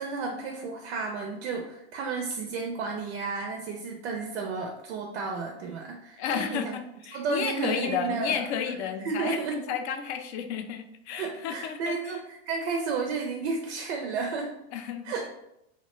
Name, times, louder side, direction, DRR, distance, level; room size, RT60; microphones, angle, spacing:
voice 1, 0.0-6.7 7.1-8.4 9.0-9.6 11.2-14.5 15.0-15.2, right 4 dB, 75° right, 2 dB, 0.5 m, -32 dB
voice 2, 6.2-12.2 14.7-15.1, left 7 dB, 70° left, 7 dB, 0.5 m, -32 dB
2.3 x 2.1 x 2.9 m, 0.82 s
hypercardioid pair, 115°, 33 cm